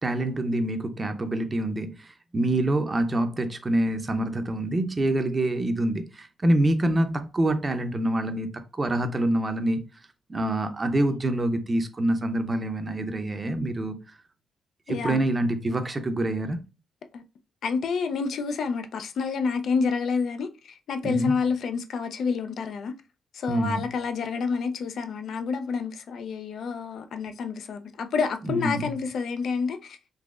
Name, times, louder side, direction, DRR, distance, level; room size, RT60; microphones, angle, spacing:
voice 1, 0.0-8.5 8.8-9.8 10.3-14.0 14.9-16.6 21.0-21.3 23.5-23.8 28.4-28.9, right 1 dB, 30° right, 0.6 m, -26 dB
voice 2, 14.9-15.2 17.1-17.2 17.6-22.9 23.3-30.0, left 5 dB, 75° left, 0.4 m, -28 dB
3.9 x 2.8 x 2.4 m
cardioid pair, 75°, 0 cm